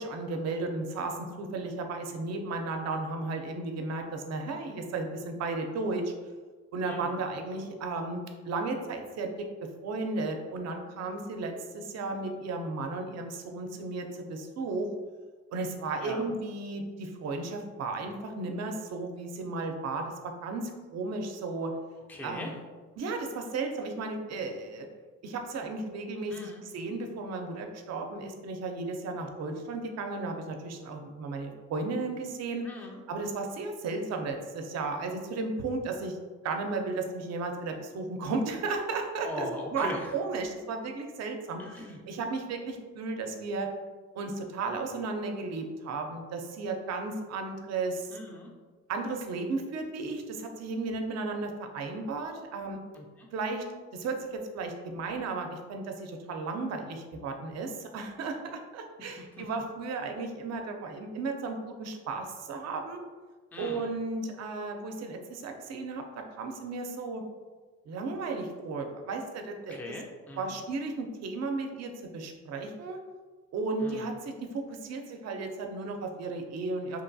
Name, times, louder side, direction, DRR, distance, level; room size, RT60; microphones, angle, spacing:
voice 1, 0.0-6.1 6.7-8.2 8.5-9.3 9.8-14.9 15.5-21.7 22.2-22.5 23.0-24.9 25.2-32.7 33.1-36.2 36.4-39.5 39.7-41.6 42.1-43.7 44.2-48.2 48.9-52.8 53.3-53.6 53.9-63.0 63.6-67.2 67.9-69.8 70.4-73.0 73.5-77.0, right 3 dB, 60° right, 4 dB, 0.5 m, -34 dB
voice 2, 6.9-7.2 16.0-16.4 22.1-22.5 26.3-26.6 32.6-33.0 39.2-40.1 41.6-42.0 48.1-48.5 52.9-53.3 59.1-59.5 63.5-63.9 69.7-70.5 73.8-74.1, left 1 dB, 5° left, 0 dB, 0.3 m, -40 dB
2.8 x 2.2 x 2.5 m, 1.4 s
cardioid pair, 90°, 30 cm